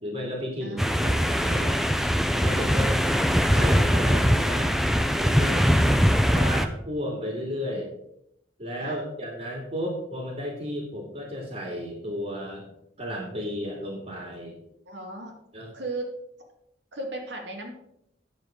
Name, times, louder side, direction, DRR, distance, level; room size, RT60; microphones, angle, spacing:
voice 1, 0.0-1.8 2.4-2.9 3.5-4.7 5.2-5.7 6.3-7.9 8.6-12.7 13.0-14.6 15.5-15.7, equal, 40° right, -1 dB, 2.4 m, -33 dB
voice 2, 0.6-1.2 2.6-3.2 8.8-9.0 14.9-15.3 15.7-16.1 16.9-17.7, right 2 dB, 75° right, 2 dB, 2.3 m, -37 dB
sound 1, 0.8-6.7, equal, ahead, 0.5 m, -22 dB
9.7 x 7.2 x 5.1 m, 0.77 s
head